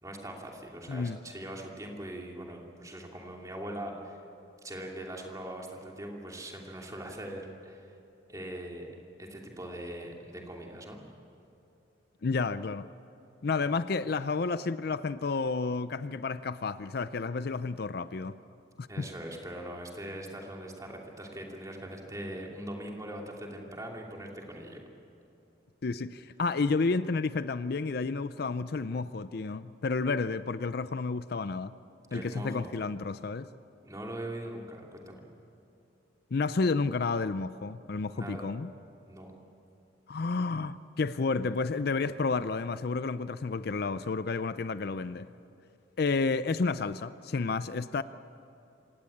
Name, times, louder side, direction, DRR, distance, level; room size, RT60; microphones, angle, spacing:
voice 1, 0.0-4.2 4.6-7.9 8.3-8.9 9.2-11.0 18.9-24.8 32.1-32.7 33.8-35.2 38.1-38.5 39.1-39.3, right 1 dB, 15° right, 0 dB, 2.9 m, -41 dB
voice 2, 0.9-1.2 12.2-12.9 13.4-18.3 18.8-19.1 25.8-31.7 32.1-33.5 36.3-38.7 40.1-45.3 46.0-48.0, left 4 dB, 55° left, 14 dB, 0.5 m, -31 dB
27.0 x 17.5 x 8.6 m, 2.8 s
head